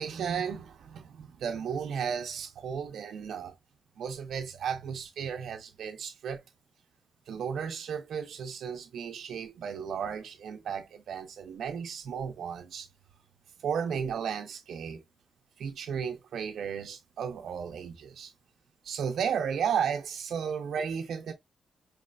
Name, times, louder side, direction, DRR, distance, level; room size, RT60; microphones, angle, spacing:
voice 1, 0.0-3.6 4.0-6.4 7.3-12.9 13.6-15.0 15.6-18.3 18.8-21.3, right 7 dB, 80° right, 0.5 m, -34 dB
4.6 x 3.1 x 2.3 m
wide cardioid pair, 130°, 0 cm